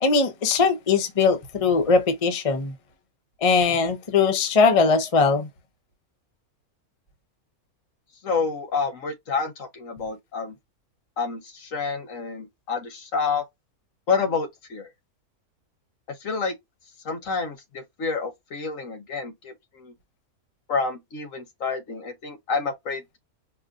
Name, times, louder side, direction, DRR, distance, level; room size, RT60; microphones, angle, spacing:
voice 1, 0.0-2.7 3.4-5.5, left 4 dB, 30° left, 0.7 m, -20 dB
voice 2, 8.2-10.5 11.2-13.4 14.1-14.9 16.2-16.5 17.0-19.9 20.7-23.2, left 5 dB, 60° left, 1.5 m, -29 dB
4.8 x 2.5 x 2.4 m
omnidirectional pair, 1.6 m